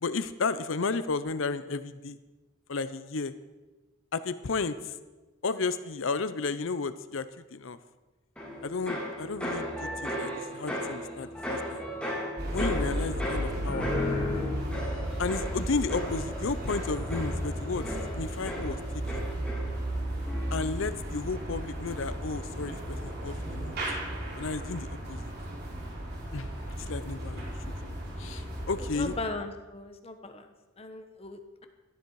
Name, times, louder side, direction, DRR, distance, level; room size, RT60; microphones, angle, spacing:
voice 1, 0.0-2.2 2.7-3.3 4.1-5.0 5.4-7.8 8.6-11.8 12.5-13.9 15.2-18.8 19.1-19.3 20.5-23.7 24.4-25.3 26.3-27.5 27.8-29.1, left 4 dB, 65° left, 13 dB, 0.6 m, -33 dB
sound 1, 8.4-20.0 20.2-20.8, left 1 dB, 5° left, 3.1 m, -35 dB
sound 2, 12.4-29.2, right 1 dB, 50° right, 3.3 m, -35 dB
voice 2, 29.0-31.7, left 3 dB, 30° left, 7 dB, 1.0 m, -38 dB
17.5 x 13.0 x 4.8 m, 1.2 s
head